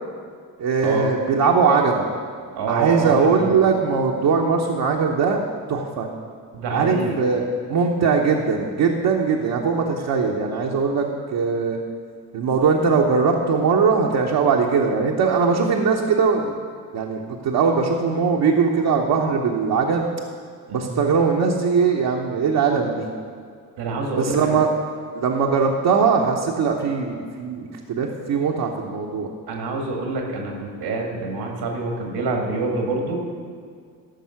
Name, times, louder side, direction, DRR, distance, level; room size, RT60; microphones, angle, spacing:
voice 1, 0.6-2.1 2.7-5.4 5.7-6.1 6.7-7.4 7.7-11.8 12.3-16.6 16.9-20.1 20.7-23.1 24.2-24.7 25.1-29.3, right 5 dB, 70° right, -1 dB, 1.1 m, -20 dB
voice 2, 2.6-3.5 6.5-7.2 20.7-20.9 23.8-24.6 29.5-33.2, right 3 dB, 85° right, 1 dB, 2.0 m, -26 dB
14.0 x 5.5 x 5.8 m, 2.1 s
supercardioid pair, 60°, 39 cm